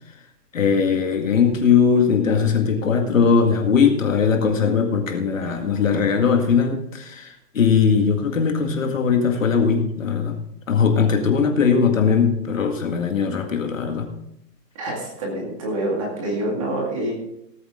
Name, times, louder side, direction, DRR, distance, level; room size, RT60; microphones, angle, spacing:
voice 1, 0.5-10.4 10.7-14.1, left 6 dB, 50° left, 4 dB, 2.1 m, -19 dB
voice 2, 14.7-17.1, right 1 dB, 20° right, -1 dB, 2.1 m, -26 dB
18.0 x 8.8 x 3.7 m, 0.80 s
hypercardioid pair, 180°, 50 cm